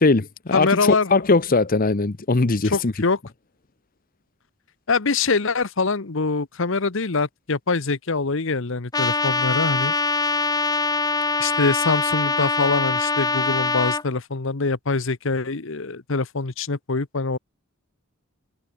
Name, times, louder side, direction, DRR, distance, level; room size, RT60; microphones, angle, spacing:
voice 1, 0.0-2.9, left 3 dB, 40° left, 0.9 m, -20 dB
voice 2, 0.5-1.2 2.7-3.2 4.9-9.9 11.4-17.4, left 4 dB, 65° left, 1.1 m, -24 dB
Trumpet, 8.9-14.0, left 3 dB, 20° left, 3.3 m, -23 dB
head